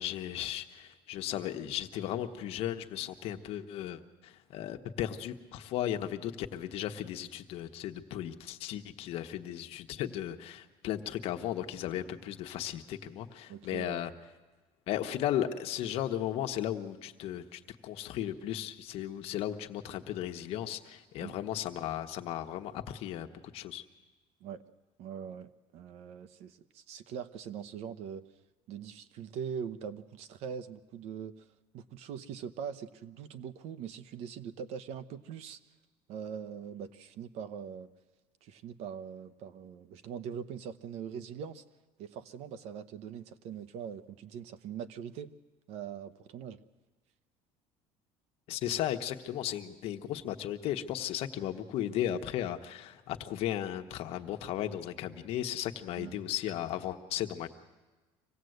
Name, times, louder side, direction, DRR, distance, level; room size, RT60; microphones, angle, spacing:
voice 1, 0.0-14.1 14.9-23.3 23.5-23.8 48.5-57.5, left 11 dB, 55° left, 6 dB, 1.2 m, -35 dB
voice 2, 13.5-14.0 21.2-21.4 24.4-24.6 25.0-28.3 28.7-31.5 31.7-35.6 36.1-37.9 38.4-41.6 42.0-45.3 45.7-46.6 56.0-56.2, right 7 dB, 60° right, 13 dB, 1.0 m, -42 dB
25.5 x 18.0 x 8.0 m, 1.2 s
cardioid pair, 160°, 12 cm